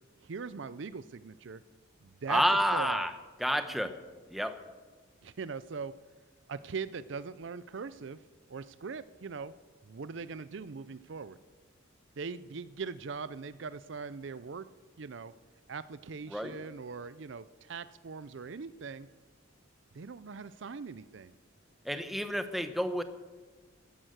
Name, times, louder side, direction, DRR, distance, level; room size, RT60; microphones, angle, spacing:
voice 1, 0.2-1.6 2.0-2.4 2.7-3.1 5.2-6.0 6.5-8.2 8.5-9.5 9.8-11.4 12.2-14.7 15.0-15.3 15.7-19.1 19.9-21.3, right 5 dB, 60° right, 16 dB, 0.5 m, -41 dB
voice 2, 2.3-3.1 3.4-3.9 4.3-4.6 16.3-16.6 21.8-23.0, equal, ahead, 9 dB, 1.0 m, -29 dB
15.0 x 11.0 x 8.0 m, 1.3 s
head